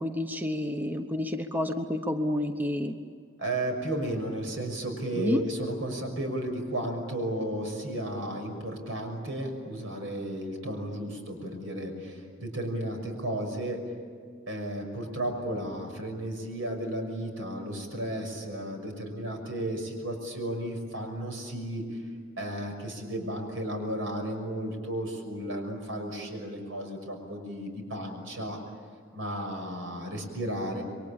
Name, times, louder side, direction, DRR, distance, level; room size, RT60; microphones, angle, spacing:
voice 1, 0.0-3.0 5.2-5.4, left 1 dB, 10° right, 5 dB, 0.9 m, -29 dB
voice 2, 3.4-13.8 14.5-22.0 22.4-28.6 29.1-30.8, right 1 dB, 70° right, 4 dB, 6.2 m, -33 dB
28.0 x 23.5 x 8.8 m, 2.1 s
head